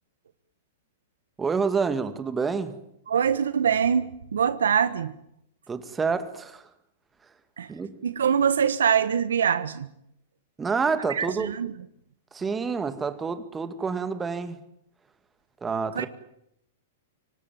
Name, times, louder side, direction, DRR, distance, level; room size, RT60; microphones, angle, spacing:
voice 1, 1.4-2.8 5.7-6.7 7.7-8.0 10.6-11.5 12.3-14.6 15.6-16.1, right 5 dB, 15° right, 2.2 m, -28 dB
voice 2, 3.1-5.1 7.6-7.7 8.0-9.9 11.1-11.7 15.9-16.1, right 7 dB, 85° right, 1.3 m, -24 dB
24.5 x 18.5 x 9.2 m
hypercardioid pair, 120°, 0 cm